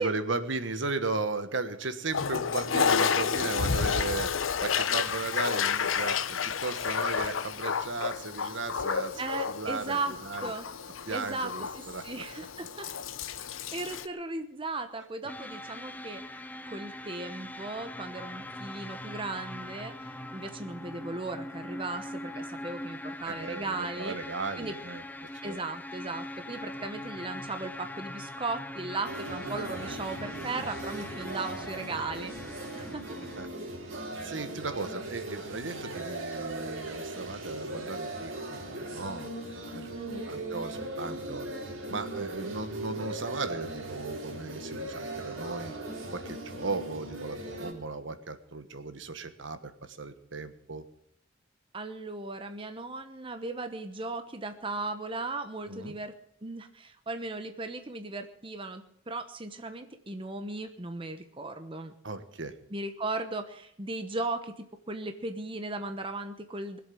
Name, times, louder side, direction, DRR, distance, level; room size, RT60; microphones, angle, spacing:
voice 1, 0.0-4.3 4.6-9.2 9.5-10.5 11.1-12.0 23.2-25.0 25.4-25.6 33.4-33.5 34.2-41.5 41.9-45.7 46.1-50.8 55.6-55.9 62.0-62.5, right 3 dB, 70° right, 10 dB, 1.4 m, -36 dB
Toilet flush, 2.1-14.1, left 6 dB, 85° left, 0.8 m, -30 dB
voice 2, 9.2-10.1 10.4-10.6 11.1-12.9 13.7-24.2 24.6-24.7 25.4-32.3 32.7-33.0 39.9-40.4 51.7-56.1 56.4-61.9 62.7-66.8, right 3 dB, 25° right, 8 dB, 1.0 m, -37 dB
sound 1, 15.3-33.5, left 1 dB, 10° left, 0.8 m, -42 dB
sound 2, 29.0-47.7, right 2 dB, 90° right, 3.9 m, -39 dB
20.5 x 7.8 x 8.6 m, 0.70 s
head